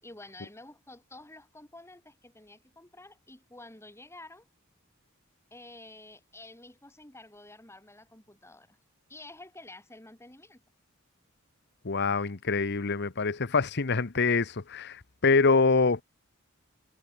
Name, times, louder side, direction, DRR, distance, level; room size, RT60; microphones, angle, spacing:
voice 1, 0.0-4.5 5.5-8.8 9.1-10.6, left 2 dB, 10° left, 4.8 m, -50 dB
voice 2, 11.8-16.0, left 4 dB, 55° left, 1.0 m, -25 dB
head